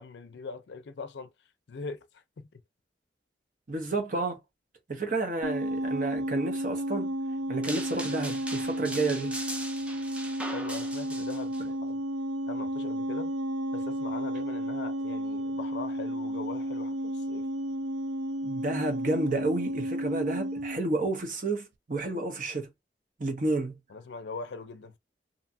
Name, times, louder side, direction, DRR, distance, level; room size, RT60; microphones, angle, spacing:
voice 1, 0.0-1.3 1.7-2.5 10.5-12.0 12.5-13.3 13.7-17.5 23.9-25.0, left 4 dB, 75° left, 0.5 m, -41 dB
voice 2, 3.7-4.4 4.9-7.1 7.5-9.4 18.4-22.7 23.2-23.8, right 2 dB, 45° right, 0.8 m, -30 dB
sound 1, 5.4-20.8, right 1 dB, 80° right, 0.4 m, -32 dB
sound 2, 7.6-11.6, right 1 dB, 5° right, 0.4 m, -40 dB
2.6 x 2.3 x 2.6 m
head